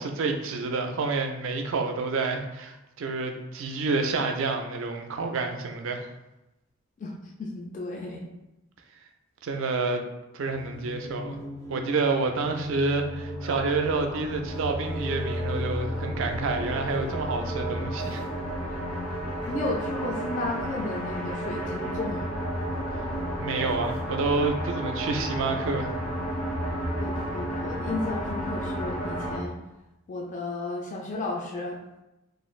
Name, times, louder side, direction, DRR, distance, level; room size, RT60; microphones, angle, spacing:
voice 1, 0.0-6.1 9.4-10.0 10.3-11.4 11.7-18.2 23.4-26.0, right 3 dB, 60° right, 5 dB, 0.3 m, -28 dB
voice 2, 7.0-8.2 19.5-22.4 27.0-29.6 30.1-31.8, left 2 dB, 35° left, -1 dB, 0.3 m, -33 dB
sound 1, 10.4-29.4, equal, 75° left, 1.1 m, -32 dB
2.5 x 2.3 x 3.1 m, 0.95 s
head